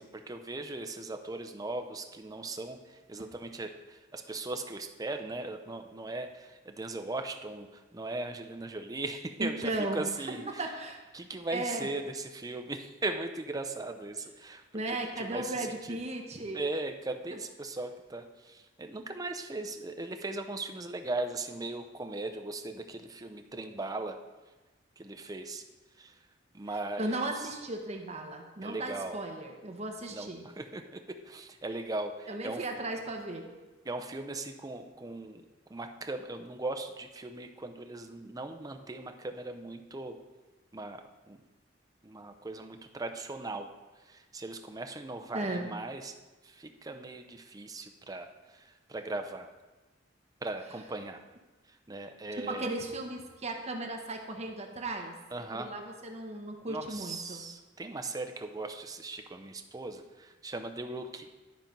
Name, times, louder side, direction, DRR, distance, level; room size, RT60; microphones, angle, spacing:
voice 1, 0.0-10.7 11.1-16.0 16.5-24.2 25.0-25.6 26.0-26.1 26.5-27.5 28.6-29.2 30.1-32.7 33.9-35.4 35.7-40.2 40.7-41.4 42.0-43.7 44.0-46.2 46.4-49.5 50.4-51.2 51.7-52.7 55.3-55.7 56.7-61.3, right 2 dB, 20° right, 6 dB, 0.5 m, -38 dB
voice 2, 9.4-10.0 10.3-11.0 11.5-11.9 14.7-16.6 27.0-30.5 32.3-33.5 45.3-45.7 52.5-55.2 55.5-57.4, right 2 dB, 35° right, 2 dB, 1.0 m, -36 dB
11.5 x 4.3 x 5.3 m, 1.2 s
head